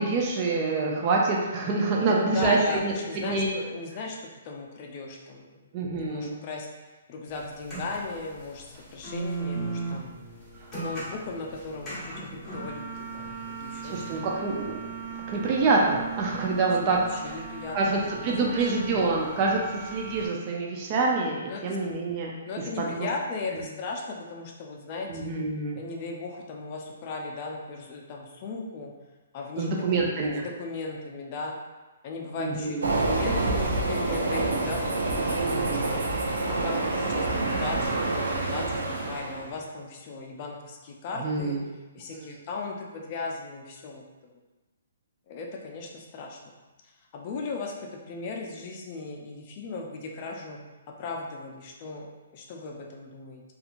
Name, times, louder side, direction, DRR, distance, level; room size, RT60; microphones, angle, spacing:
voice 1, 0.0-2.9 3.3-3.5 5.7-6.3 13.8-14.8 15.3-17.1 17.7-21.4 21.6-22.4 22.8-23.1 23.5-23.6 25.1-25.8 29.6-30.5 32.4-33.0 35.4-35.9 41.2-41.6 42.1-42.3, right 3 dB, 30° right, -2 dB, 0.4 m, -26 dB
voice 2, 2.0-5.6 6.0-6.7 7.1-10.1 10.8-14.3 16.8-18.6 21.5-21.8 22.4-25.3 25.8-28.9 29.3-31.6 32.0-35.9 36.5-41.6 41.9-44.0 45.3-46.4 46.8-50.6 51.0-53.4, left 3 dB, 35° left, 0 dB, 0.4 m, -37 dB
sound 1, 7.3-20.3, right 4 dB, 10° left, 1.2 m, -37 dB
Train, 32.8-39.5, right 2 dB, 85° right, 0.5 m, -27 dB
2.7 x 2.4 x 2.5 m, 1.2 s
hypercardioid pair, 150°, 0 cm